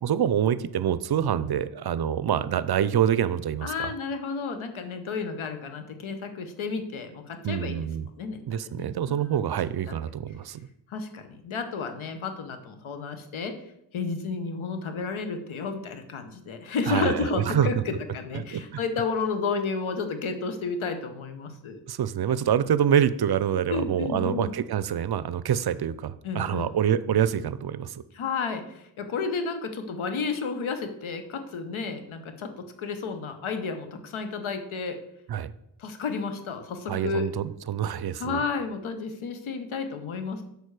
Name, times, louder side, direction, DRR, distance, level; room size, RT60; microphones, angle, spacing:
voice 1, 0.0-3.9 7.4-8.1 8.5-10.7 16.9-17.7 18.3-18.8 21.9-28.0 35.3-35.5 36.9-38.4, right 9 dB, 55° right, 15 dB, 0.5 m, -26 dB
voice 2, 3.6-7.8 8.2-9.4 9.9-10.0 10.9-13.6 13.9-21.8 23.7-24.5 26.2-26.7 28.1-35.0 35.8-37.3 38.1-40.4, left 4 dB, 85° left, 8 dB, 1.0 m, -32 dB
6.6 x 6.5 x 4.8 m, 0.80 s
cardioid pair, 45°, 47 cm